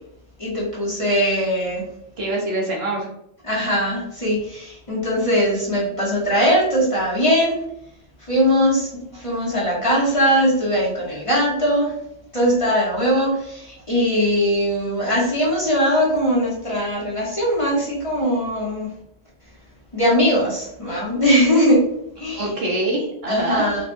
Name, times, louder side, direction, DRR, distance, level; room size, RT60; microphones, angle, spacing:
voice 1, 0.4-1.8 3.4-7.6 8.3-11.9 12.3-18.9 19.9-21.8 22.2-22.5 23.3-23.8, equal, 30° left, -6 dB, 1.1 m, -20 dB
voice 2, 2.2-3.1 22.3-23.7, right 2 dB, 60° right, -3 dB, 1.1 m, -24 dB
4.4 x 2.4 x 2.6 m, 0.76 s
omnidirectional pair, 1.2 m